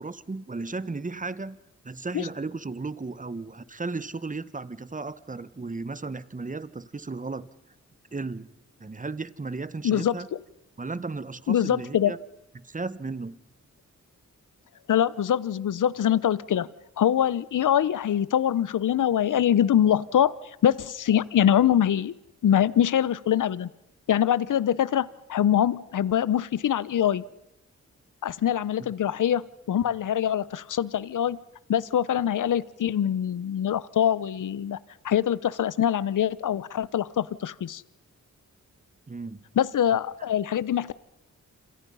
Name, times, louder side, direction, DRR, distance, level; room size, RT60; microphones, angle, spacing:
voice 1, 0.0-1.6 1.8-7.5 8.1-8.5 8.8-10.3 10.8-12.2 12.5-13.4 28.8-28.9 39.1-39.4, right 3 dB, 25° right, 1.2 m, -35 dB
voice 2, 9.8-10.2 11.5-12.1 14.9-16.7 17.0-20.3 20.6-22.1 22.4-23.7 24.1-27.2 28.2-31.4 31.7-34.8 35.0-37.8 39.6-40.9, left 10 dB, 80° left, 0.8 m, -24 dB
27.5 x 27.0 x 5.6 m
cardioid pair, 65°, 31 cm